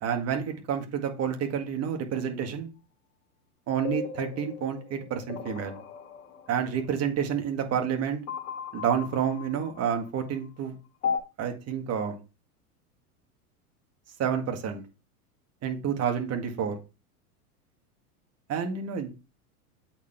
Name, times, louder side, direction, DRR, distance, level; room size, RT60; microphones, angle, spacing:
voice 1, 0.0-2.7 3.7-5.8 6.5-8.2 8.7-10.7 11.4-12.2 14.2-14.8 15.6-16.8 18.5-19.1, right 8 dB, 35° right, 5 dB, 1.9 m, -29 dB
sound 1, 3.8-6.9 8.3-10.2 11.0-11.2, left 6 dB, 75° left, 1.6 m, -36 dB
8.1 x 4.5 x 3.3 m, 0.29 s
hypercardioid pair, 100°, 45 cm